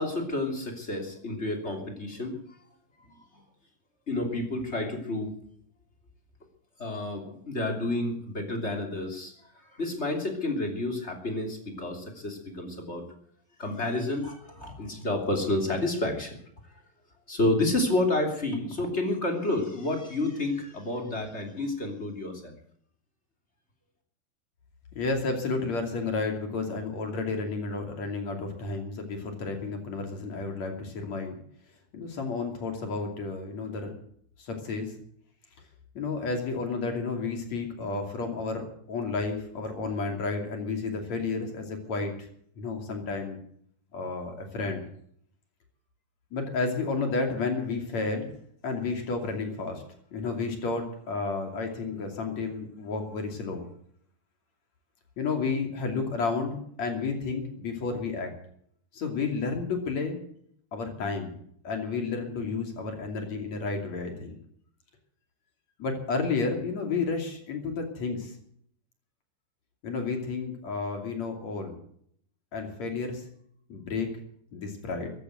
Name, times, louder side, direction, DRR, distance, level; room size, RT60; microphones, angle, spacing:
voice 1, 0.0-2.3 3.1-3.2 4.1-5.3 6.8-13.0 13.6-16.4 17.3-22.5, left 2 dB, 20° left, 3 dB, 2.6 m, -30 dB
voice 2, 25.0-31.3 31.9-33.9 34.4-34.9 36.0-42.3 42.6-43.4 43.9-44.8 46.3-48.4 48.6-49.8 50.1-53.7 55.2-58.3 58.9-60.2 60.7-61.3 61.6-64.3 65.8-68.3 69.8-71.8 72.5-73.2 73.7-74.1 74.5-75.1, left 4 dB, 45° left, 4 dB, 3.7 m, -31 dB
15.0 x 12.0 x 7.8 m, 0.65 s
omnidirectional pair, 4.6 m